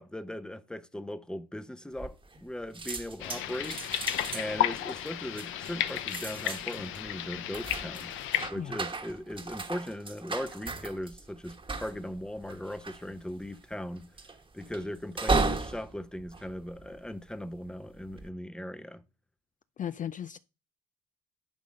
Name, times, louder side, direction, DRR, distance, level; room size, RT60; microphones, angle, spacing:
voice 1, 0.0-3.8 4.3-8.1 8.5-14.1 14.5-19.0, left 1 dB, 5° left, 0.7 m, -39 dB
sound 1, 2.0-2.5 2.7-17.3 17.9-18.3, right 3 dB, 25° right, 1.2 m, -36 dB
sound 2, 3.2-8.5, left 12 dB, 85° left, 0.7 m, -33 dB
voice 2, 19.8-20.4, left 9 dB, 40° left, 0.4 m, -36 dB
10.5 x 4.0 x 5.1 m
cardioid pair, 90°, 20 cm